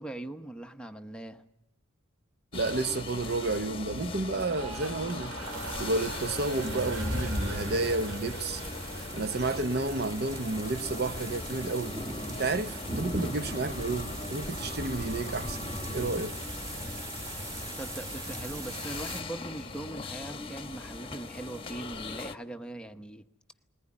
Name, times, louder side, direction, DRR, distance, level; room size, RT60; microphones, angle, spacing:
voice 1, 0.0-1.4 17.8-23.3, right 1 dB, 5° left, 0.8 m, -40 dB
sound 1, 2.5-22.4, left 3 dB, 25° left, 1.1 m, -41 dB
voice 2, 2.5-5.3 5.8-8.6 9.1-12.0 12.3-16.4, right 3 dB, 50° right, 0.8 m, -31 dB
sound 2, 4.4-10.7 11.0-11.5, right 3 dB, 85° right, 2.7 m, -43 dB
sound 3, 5.4-19.2, equal, 25° right, 2.4 m, -38 dB
21.0 x 19.0 x 9.9 m
head